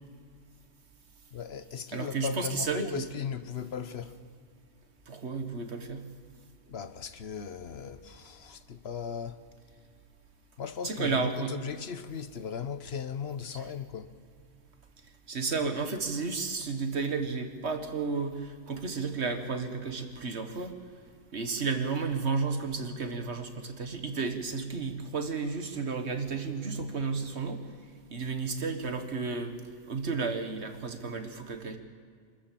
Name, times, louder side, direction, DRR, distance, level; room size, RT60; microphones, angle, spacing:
voice 1, 1.3-4.2 6.7-9.4 10.6-14.1, left 7 dB, 70° left, 1.2 m, -37 dB
voice 2, 1.9-3.1 5.1-6.0 10.8-11.5 13.5-13.6 15.3-20.7 21.3-27.6 28.1-29.5 29.9-31.8, right 4 dB, 75° right, 1.8 m, -32 dB
25.5 x 14.0 x 7.6 m
omnidirectional pair, 1.1 m